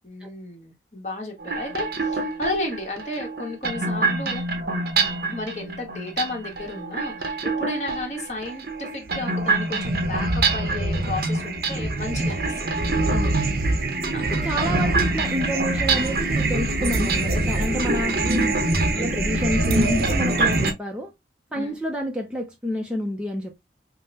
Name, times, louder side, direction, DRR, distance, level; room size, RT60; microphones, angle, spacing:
voice 1, 0.0-4.5 5.3-12.8 14.1-14.3 18.9-19.2 21.5-21.8, left 2 dB, 40° left, 1.4 m, -33 dB
sound 1, 1.4-20.7, right 2 dB, 55° right, 0.8 m, -24 dB
voice 2, 13.1-13.4 14.3-18.5 19.0-21.1 21.5-23.6, left 1 dB, 5° right, 0.5 m, -29 dB
5.4 x 2.1 x 2.7 m
head